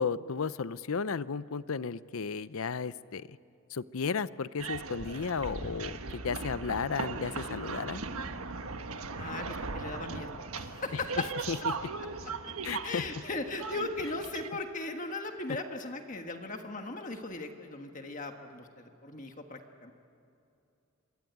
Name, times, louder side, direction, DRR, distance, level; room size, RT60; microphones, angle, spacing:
voice 1, 0.0-3.4 3.7-8.0 11.5-11.7 12.6-13.0, left 5 dB, 75° left, 17 dB, 0.6 m, -34 dB
sound 1, 4.6-14.5, right 4 dB, 80° right, 1.4 m, -38 dB
voice 2, 9.2-10.3 10.6-11.2 12.8-19.9, left 2 dB, 35° left, 5 dB, 1.5 m, -38 dB
27.5 x 22.5 x 9.4 m, 2.6 s
head